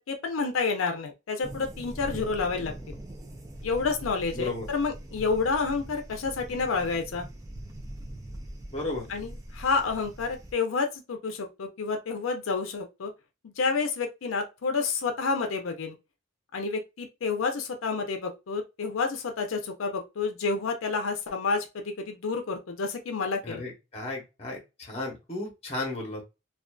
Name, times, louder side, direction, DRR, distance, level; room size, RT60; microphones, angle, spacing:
voice 1, 0.1-3.0 3.6-7.3 9.1-13.1 13.4-15.9 16.5-23.6, left 4 dB, 90° left, 0.5 m, -29 dB
sound 1, 1.4-10.5, right 1 dB, 15° right, 0.4 m, -42 dB
voice 2, 4.3-4.7 8.7-9.0 23.4-26.2, left 2 dB, 30° left, 0.9 m, -34 dB
2.5 x 2.3 x 2.2 m
head